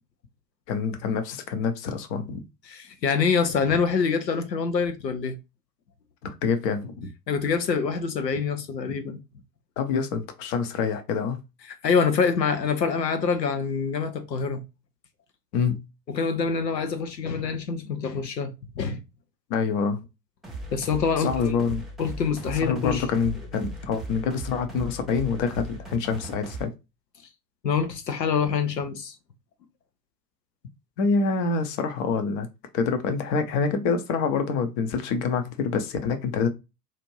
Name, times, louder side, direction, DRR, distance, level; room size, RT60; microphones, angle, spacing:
voice 1, 0.7-2.4 6.2-7.1 9.8-11.4 15.5-15.8 19.5-20.0 21.2-21.8 22.6-26.7 31.0-32.5 32.7-36.5, left 5 dB, 45° left, 0.9 m, -26 dB
voice 2, 2.7-5.4 7.3-9.2 11.8-14.6 16.1-19.0 20.7-21.6 22.0-23.1 27.6-29.2, left 5 dB, 80° left, 0.8 m, -25 dB
sound 1, 20.4-26.6, right 2 dB, ahead, 0.4 m, -38 dB
4.3 x 2.5 x 3.0 m
figure-of-eight pair, 85°, 49 cm